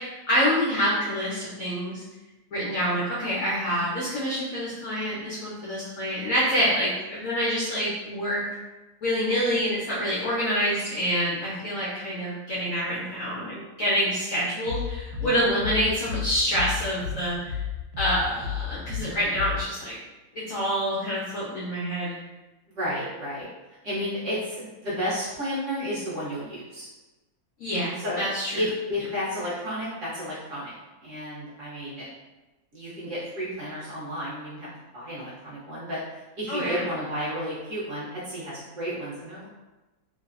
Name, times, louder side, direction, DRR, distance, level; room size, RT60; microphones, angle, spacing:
voice 1, 0.0-2.0 2.5-8.4 9.0-17.6 18.0-20.0 20.5-22.2 27.6-28.5 36.5-36.8, equal, 70° left, -8 dB, 0.7 m, -27 dB
sound 1, 14.7-19.6, left 7 dB, 80° right, 1.2 m, -33 dB
voice 2, 22.7-23.5 23.8-26.9 28.0-28.2 28.5-30.7 31.0-32.0 32.7-36.0 36.4-39.5, equal, 55° right, -9 dB, 0.9 m, -32 dB
3.1 x 2.0 x 2.4 m, 1.1 s
omnidirectional pair, 2.0 m